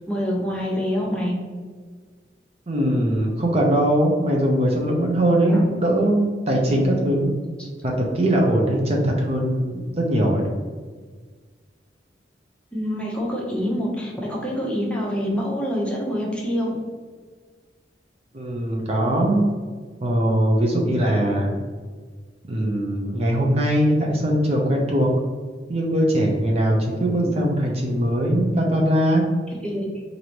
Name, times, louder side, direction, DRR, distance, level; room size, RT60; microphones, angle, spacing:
voice 1, 0.1-1.3 5.5-5.6 7.6-7.7 12.7-16.8 27.2-27.3 29.6-29.9, equal, 5° left, -3 dB, 0.8 m, -26 dB
voice 2, 2.7-7.3 7.8-10.4 18.3-19.5 20.0-21.5 22.5-25.1 25.7-29.2, right 1 dB, 35° right, -1 dB, 0.6 m, -21 dB
4.7 x 2.6 x 2.9 m, 1.5 s
head